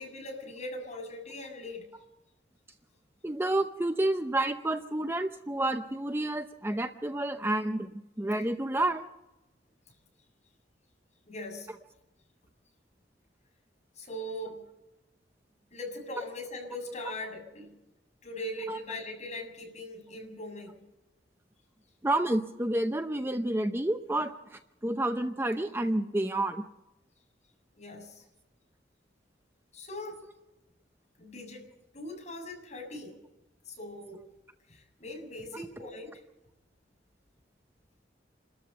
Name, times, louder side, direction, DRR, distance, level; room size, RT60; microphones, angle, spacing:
voice 1, 0.0-1.9 11.3-11.7 14.0-14.6 15.7-17.7 18.2-20.8 27.8-28.2 29.7-30.2 31.2-31.7 31.9-33.2 33.7-34.2 34.7-36.2, left 1 dB, 40° left, 1 dB, 7.0 m, -40 dB
voice 2, 3.2-9.1 18.7-18.8 22.0-26.7, right 1 dB, 15° right, 8 dB, 0.7 m, -30 dB
28.5 x 13.5 x 6.9 m, 0.97 s
head